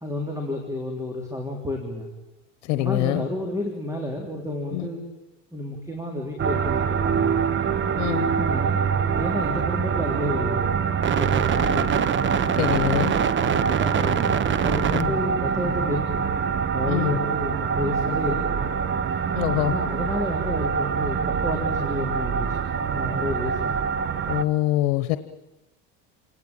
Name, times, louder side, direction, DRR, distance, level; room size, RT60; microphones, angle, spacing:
voice 1, 0.0-2.1 2.8-5.1 5.5-7.4 8.4-10.8 11.1-12.1 13.4-16.3 16.7-18.7 19.6-23.7, left 1 dB, 10° right, 3 dB, 3.8 m, -31 dB
voice 2, 2.6-3.3 4.7-4.9 8.0-8.3 12.5-13.1 14.9-15.1 16.9-17.2 19.3-19.8 24.3-25.2, left 16 dB, 90° left, 12 dB, 1.1 m, -24 dB
sound 1, 6.4-24.4, right 7 dB, 35° right, 1.2 m, -24 dB
28.5 x 18.5 x 8.9 m, 1.1 s
supercardioid pair, 120°, 35 cm